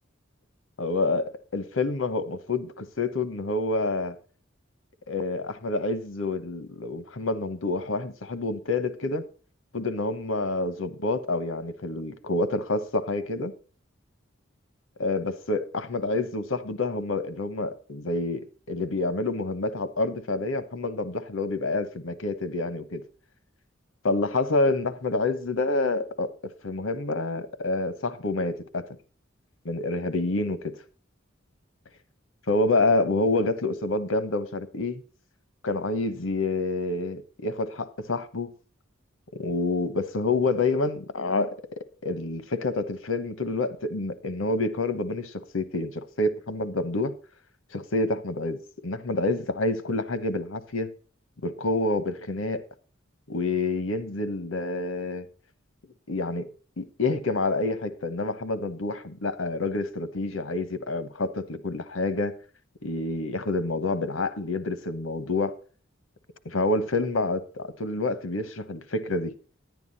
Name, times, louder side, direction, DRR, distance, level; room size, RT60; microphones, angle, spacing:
voice 1, 0.8-4.1 5.1-9.2 9.7-13.5 15.0-23.0 24.0-28.8 29.6-30.8 32.5-35.0 35.6-38.5 39.3-47.1 47.7-50.9 51.4-52.6 53.3-55.3 56.1-56.5 56.8-62.3 62.8-65.5 66.4-69.3, left 2 dB, 90° left, 1.0 m, -28 dB
11.0 x 9.4 x 4.1 m
head